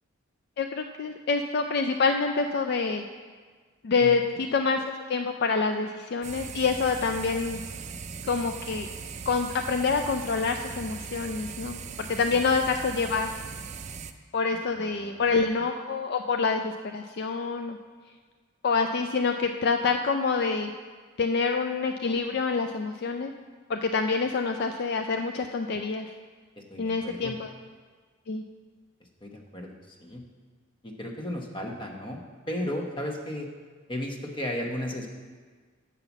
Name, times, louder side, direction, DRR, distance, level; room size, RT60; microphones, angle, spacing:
voice 1, 0.6-3.0 3.8-4.8 5.1-7.6 8.3-8.9 9.3-11.8 12.1-13.3 14.3-17.8 18.6-20.7 21.2-23.3 23.7-26.1 26.8-27.5 28.3-28.4, left 4 dB, 50° left, 6 dB, 0.3 m, -27 dB
sound 1, 6.2-14.1, right 5 dB, 35° right, 0.3 m, -39 dB
voice 2, 14.8-15.3 26.6-27.4 29.2-30.2 30.8-32.2 32.5-33.5 33.9-35.1, left 1 dB, 25° left, 2 dB, 0.9 m, -34 dB
7.0 x 5.7 x 6.9 m, 1.5 s
head